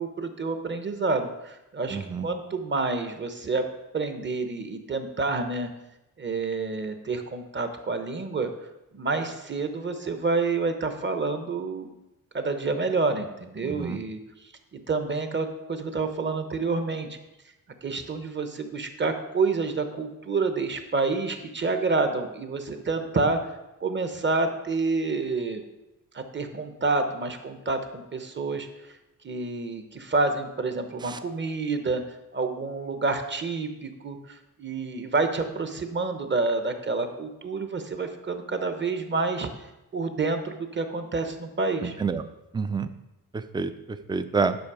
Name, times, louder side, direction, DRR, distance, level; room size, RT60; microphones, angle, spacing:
voice 1, 0.0-3.6 3.9-5.7 6.2-8.5 8.9-11.9 12.3-14.2 14.7-17.2 17.8-23.4 23.8-25.6 26.1-28.7 29.2-32.0 32.3-39.5 39.9-42.0, right 3 dB, 30° right, 7 dB, 1.0 m, -28 dB
voice 2, 1.9-2.3 13.6-14.0 31.0-31.2 41.8-42.2 42.5-42.9 43.3-44.6, right 5 dB, 15° right, 10 dB, 0.4 m, -28 dB
10.5 x 6.1 x 4.9 m, 0.94 s
wide cardioid pair, 145°, 36 cm